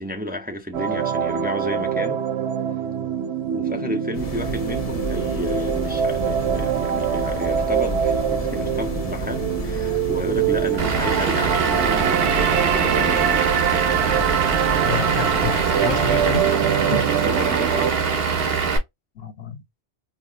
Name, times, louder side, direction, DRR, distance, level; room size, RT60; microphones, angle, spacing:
voice 1, 0.0-2.2 3.5-13.5 17.2-18.0, left 1 dB, 10° right, 0.6 m, -31 dB
sound 1, 0.7-17.9, right 9 dB, 90° right, 0.9 m, -24 dB
sound 2, 4.1-16.4, left 2 dB, 40° left, 0.8 m, -32 dB
Vehicle / Engine, 10.8-18.8, right 5 dB, 65° right, 1.2 m, -23 dB
voice 2, 14.8-16.5 16.8-17.1 19.1-19.6, left 5 dB, 80° left, 1.1 m, -29 dB
5.5 x 2.0 x 2.3 m
omnidirectional pair, 1.1 m